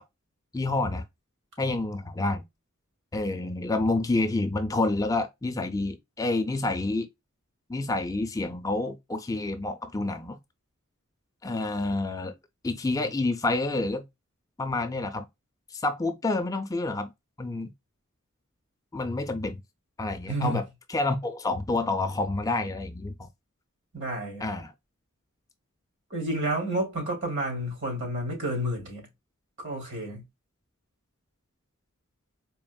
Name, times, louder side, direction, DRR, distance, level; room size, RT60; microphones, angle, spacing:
voice 1, 0.5-1.0 1.6-2.4 3.1-7.1 7.7-10.4 11.4-12.3 12.6-14.0 14.6-15.3 15.7-17.1 17.4-17.7 18.9-19.6 20.0-20.6 20.9-23.3 24.4-24.7, left 2 dB, 15° left, 0.4 m, -28 dB
voice 2, 20.3-20.6 23.9-24.5 26.1-29.0 29.6-30.2, right 1 dB, 65° right, 2.4 m, -30 dB
4.2 x 3.2 x 2.2 m
head